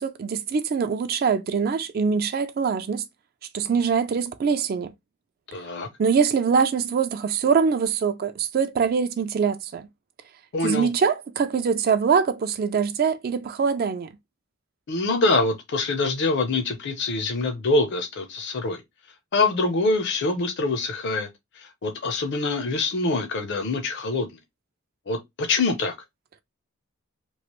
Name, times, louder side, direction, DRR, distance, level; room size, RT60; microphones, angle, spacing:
voice 1, 0.0-3.0 3.5-4.9 6.0-9.9 10.6-14.1, right 6 dB, 45° right, 0.3 m, -23 dB
voice 2, 5.5-5.9 10.5-10.9 14.9-18.8 19.3-21.3 21.6-24.3 25.1-25.9, left 3 dB, 55° left, 0.6 m, -25 dB
3.1 x 2.4 x 2.9 m
head